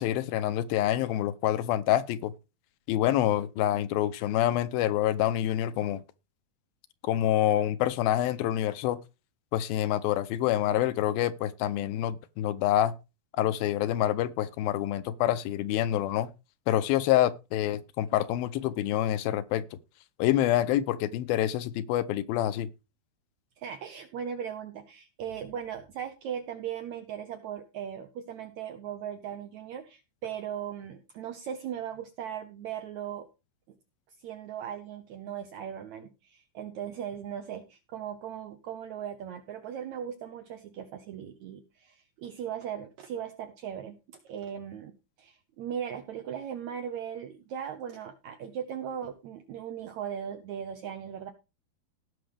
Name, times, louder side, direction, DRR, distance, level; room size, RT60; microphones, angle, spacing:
voice 1, 0.0-2.3 2.9-6.0 7.0-9.0 9.5-12.9 13.4-16.3 16.7-19.6 20.2-22.7, left 12 dB, 80° left, 2.5 m, -27 dB
voice 2, 23.6-33.3 33.7-33.8 34.2-51.3, right 9 dB, 75° right, 1.7 m, -38 dB
17.0 x 6.3 x 3.4 m
omnidirectional pair, 4.3 m